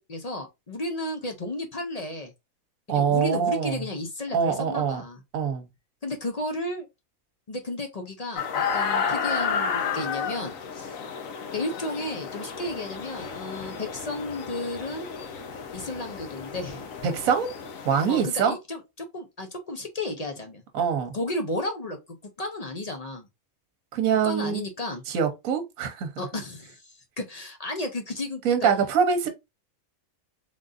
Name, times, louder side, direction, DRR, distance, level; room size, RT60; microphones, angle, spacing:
voice 1, 0.0-2.3 2.9-5.2 6.0-6.9 7.5-11.0 11.5-15.1 15.7-16.9 18.1-20.6 21.1-22.0 22.4-23.3 24.2-25.0 26.2-28.4, left 1 dB, 45° left, 0.5 m, -33 dB
voice 2, 2.9-3.8 4.3-5.0 5.3-5.7 17.0-17.5 17.8-18.6 20.7-21.1 23.9-24.6 25.1-26.1 28.4-29.3, right 7 dB, 75° right, 1.2 m, -24 dB
sound 1, 8.4-18.2, left 6 dB, 70° left, 1.2 m, -32 dB
3.7 x 3.6 x 2.5 m
omnidirectional pair, 1.5 m